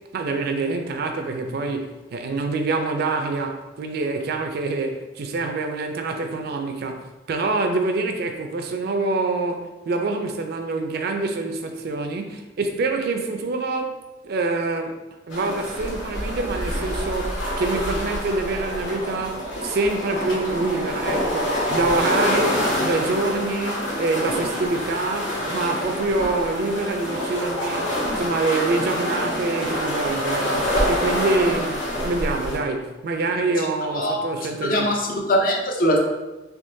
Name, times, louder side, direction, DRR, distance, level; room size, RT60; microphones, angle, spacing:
voice 1, 0.1-7.0 7.3-14.0 14.2-14.9 15.3-34.9, right 3 dB, 55° right, 5 dB, 0.4 m, -26 dB
sound 1, 15.3-32.6, equal, 80° left, 1.1 m, -26 dB
voice 2, 34.6-36.0, equal, 50° left, 1 dB, 0.5 m, -21 dB
3.6 x 2.9 x 2.6 m, 1.1 s
head